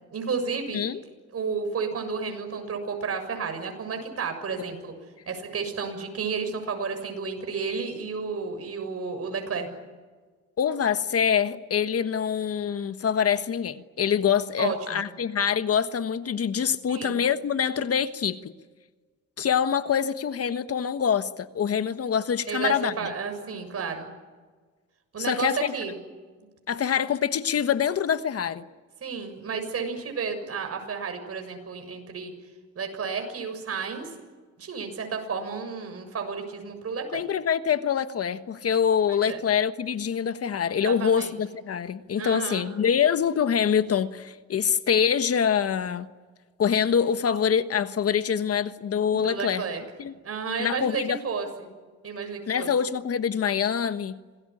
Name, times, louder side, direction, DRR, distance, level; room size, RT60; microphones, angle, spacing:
voice 1, 0.1-0.8 1.3-4.9 5.3-9.7 14.6-15.0 16.9-17.2 22.5-24.1 25.1-26.0 29.0-32.3 32.8-34.1 34.6-37.2 39.1-39.4 40.8-41.3 42.2-42.7 49.1-49.8 50.2-51.7 52.0-52.7, right 5 dB, 50° right, 7.1 m, -32 dB
voice 2, 10.6-18.5 19.4-22.9 25.2-25.7 26.7-28.6 37.1-46.1 46.6-49.6 50.0-50.1 50.6-51.2 52.5-54.2, left 7 dB, 50° left, 1.4 m, -25 dB
27.0 x 19.5 x 9.9 m
cardioid pair, 90°, 30 cm